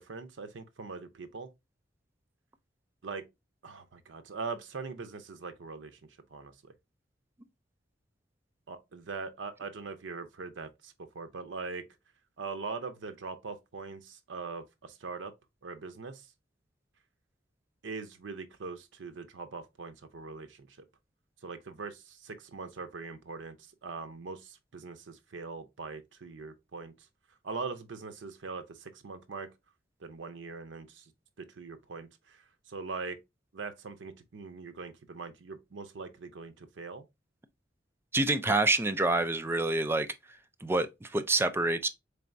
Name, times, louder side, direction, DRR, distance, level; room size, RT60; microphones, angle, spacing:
voice 1, 0.0-1.5 3.0-3.2 3.6-6.0 6.3-6.7 8.7-11.8 12.4-15.3 15.6-16.3 17.8-20.8 21.4-23.6 23.8-26.9 27.4-29.5 30.0-31.1 31.4-33.2 33.5-37.0, right 4 dB, 85° right, 0.6 m, -41 dB
voice 2, 38.1-40.1 40.6-41.9, right 2 dB, 15° right, 0.4 m, -27 dB
4.0 x 3.4 x 2.5 m
head